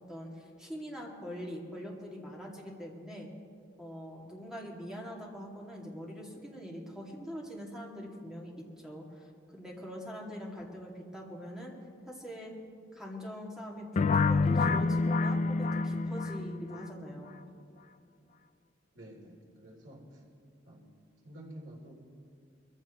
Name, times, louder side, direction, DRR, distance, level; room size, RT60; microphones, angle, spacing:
voice 1, 0.1-3.3 3.8-11.7 12.0-12.5 12.9-17.5, equal, 5° right, -3 dB, 2.3 m, -43 dB
sound 1, 14.0-16.8, left 4 dB, 40° left, 0.3 m, -27 dB
voice 2, 18.9-20.2 20.7-20.9 21.2-21.9, right 1 dB, 75° right, -2 dB, 3.3 m, -49 dB
22.5 x 15.5 x 3.1 m, 2.3 s
head